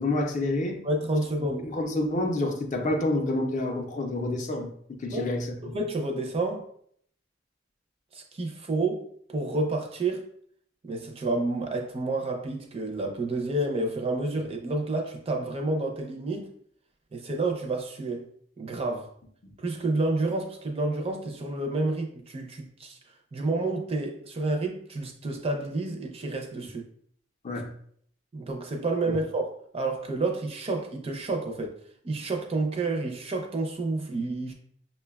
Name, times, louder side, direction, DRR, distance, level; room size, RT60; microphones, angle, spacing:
voice 1, 0.0-0.8 1.4-5.7 19.4-19.6 27.4-27.7 29.1-29.2, left 2 dB, 40° left, 0.4 m, -29 dB
voice 2, 0.8-1.7 5.1-5.3 5.6-6.7 8.1-10.3 10.8-16.5 17.1-18.3 18.6-19.1 19.6-23.0 23.3-26.9 28.3-31.8 32.0-34.5, right 2 dB, 30° right, 0.4 m, -29 dB
5.3 x 2.2 x 2.2 m
head